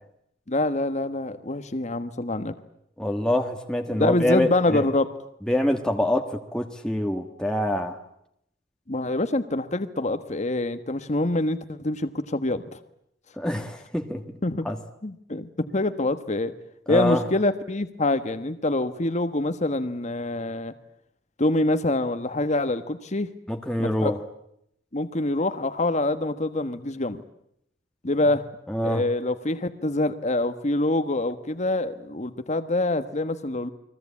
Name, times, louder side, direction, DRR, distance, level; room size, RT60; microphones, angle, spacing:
voice 1, 0.5-2.6 3.9-5.1 8.9-12.8 14.4-14.7 15.0-16.5 16.9-20.7 21.4-23.3 23.8-24.1 24.9-27.2 28.0-28.4 28.8-33.7, left 2 dB, 40° left, 9 dB, 1.3 m, -25 dB
voice 2, 3.0-4.9 5.5-8.0 13.4-14.2 14.6-14.8 16.9-17.2 23.5-24.2 28.7-29.0, left 1 dB, 5° left, 3 dB, 1.5 m, -25 dB
30.0 x 22.0 x 8.5 m, 0.77 s
head